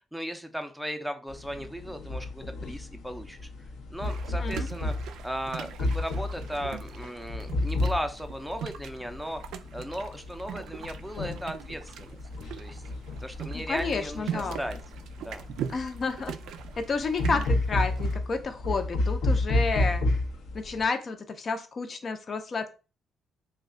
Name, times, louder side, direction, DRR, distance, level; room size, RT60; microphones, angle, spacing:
voice 1, 0.0-3.5 3.9-9.4 9.7-12.2 12.5-12.8 13.2-14.8 15.2-15.4, equal, ahead, 7 dB, 0.5 m, -36 dB
sound 1, 1.3-20.9, left 2 dB, 80° left, 0.8 m, -32 dB
sound 2, 4.0-18.2, right 9 dB, 85° right, 0.3 m, -41 dB
voice 2, 13.5-14.6 15.7-16.4 16.8-20.0 20.5-22.7, left 4 dB, 45° left, 7 dB, 0.6 m, -31 dB
3.1 x 2.2 x 3.7 m, 0.32 s
cardioid pair, 90°, 0 cm